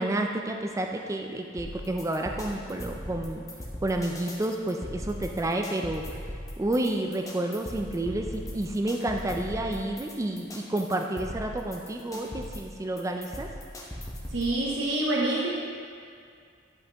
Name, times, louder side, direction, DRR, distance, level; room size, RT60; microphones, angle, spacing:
voice 1, 0.0-3.4 3.8-6.2 6.6-13.5, right 1 dB, 15° right, 3 dB, 0.3 m, -30 dB
sound 1, 1.6-14.6, equal, 15° left, 0.9 m, -39 dB
voice 2, 14.3-15.5, right 2 dB, 65° right, -4 dB, 0.8 m, -27 dB
10.5 x 5.5 x 2.9 m, 2.2 s
head